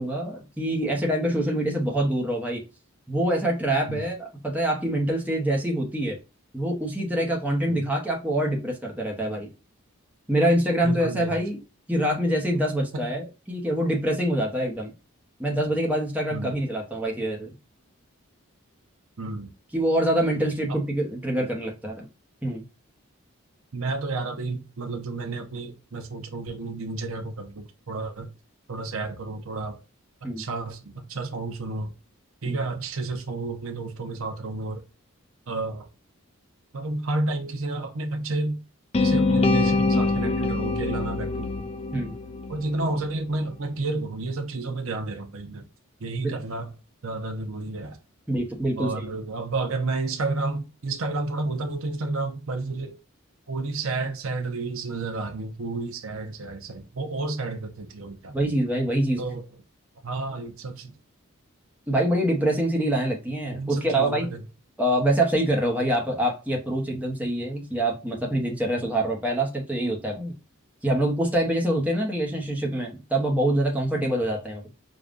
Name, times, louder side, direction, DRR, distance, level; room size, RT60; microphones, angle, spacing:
voice 1, 0.0-2.6 3.1-6.2 6.5-9.5 10.3-11.6 11.9-14.9 15.4-17.5 19.7-22.1 22.4-22.6 30.2-30.4 32.4-32.6 41.9-42.1 46.2-46.3 48.3-49.1 58.3-59.2 61.9-64.3 64.8-70.3 70.8-74.6, right 1 dB, 5° right, 0.8 m, -25 dB
voice 2, 10.8-11.4 12.9-13.1 16.3-16.5 19.2-19.5 20.7-20.8 23.7-28.3 28.7-29.8 30.2-31.9 32.4-34.8 35.5-35.9 36.7-38.6 39.0-41.5 42.5-45.7 46.0-46.7 47.0-48.0 48.8-53.0 53.5-58.4 59.2-59.5 60.0-60.9 63.5-64.4, right 3 dB, 70° right, 0.7 m, -31 dB
sound 1, 38.9-43.0, left 3 dB, 25° left, 0.3 m, -24 dB
5.1 x 2.3 x 2.4 m
head